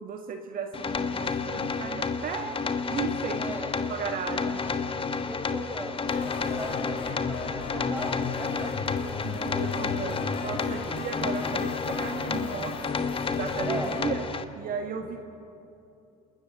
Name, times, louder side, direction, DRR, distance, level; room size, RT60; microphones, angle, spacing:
voice 1, 0.0-2.5 2.9-3.5 3.9-4.6 9.2-12.8 13.3-14.3 14.6-15.2, right 6 dB, 50° right, 4 dB, 1.8 m, -35 dB
sound 1, 0.7-14.4, left 5 dB, 30° left, 1.5 m, -31 dB
voice 2, 3.4-3.7 4.4-4.7 5.1-9.8 13.6-14.0, equal, 10° right, 3 dB, 5.3 m, -39 dB
sound 2, 6.1-14.1, left 4 dB, 55° left, 4.9 m, -36 dB
27.0 x 14.0 x 9.0 m, 2.7 s
hypercardioid pair, 70°, 18 cm